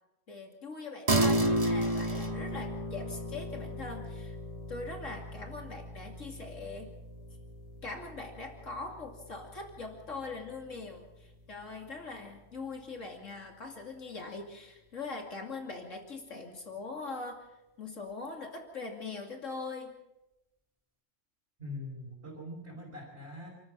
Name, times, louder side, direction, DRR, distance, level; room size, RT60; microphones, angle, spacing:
voice 1, 0.3-4.4 4.7-6.9 7.8-17.5 17.8-19.9, left 3 dB, 75° left, 2 dB, 3.0 m, -42 dB
sound 1, 1.1-10.8, right 1 dB, 25° right, 1.6 m, -34 dB
voice 2, 21.6-23.5, left 1 dB, 55° right, 0 dB, 5.1 m, -42 dB
29.0 x 13.0 x 7.5 m, 0.97 s
omnidirectional pair, 1.3 m